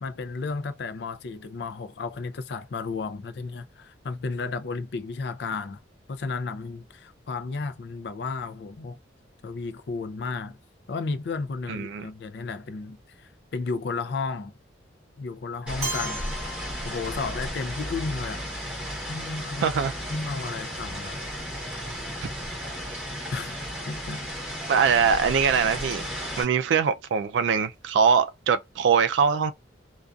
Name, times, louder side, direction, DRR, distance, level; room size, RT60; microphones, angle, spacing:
voice 1, 0.0-5.8 6.1-9.0 9.4-10.6 10.9-14.5 15.2-16.3 16.8-18.4 19.1-19.7 20.1-21.3 23.3-23.6 23.9-24.5, left 4 dB, 60° left, 0.4 m, -33 dB
voice 2, 11.7-12.1 19.6-19.9 24.7-26.1 26.4-29.5, right 6 dB, 75° right, 0.3 m, -22 dB
sound 1, 15.7-26.4, equal, 5° right, 1.0 m, -34 dB
Keyboard (musical), 15.8-17.8, right 2 dB, 35° right, 1.3 m, -36 dB
2.5 x 2.3 x 2.3 m
head